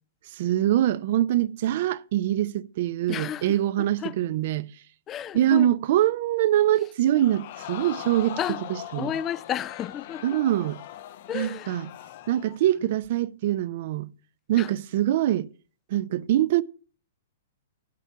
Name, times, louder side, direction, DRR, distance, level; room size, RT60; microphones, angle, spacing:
voice 1, 0.3-4.7 5.3-8.4 8.9-9.1 10.2-10.8 11.3-11.9 12.3-14.1 14.5-15.5 15.9-16.6, right 12 dB, 55° right, 0.5 m, -24 dB
voice 2, 3.1-4.2 5.1-5.7 8.4-8.6 9.0-10.4 11.3-11.8 14.6-14.7, left 10 dB, 25° left, 0.4 m, -32 dB
Crowd, 7.1-12.6 13.0-13.1, left 12 dB, 55° left, 0.8 m, -40 dB
10.0 x 7.6 x 5.6 m
hypercardioid pair, 120°, 0 cm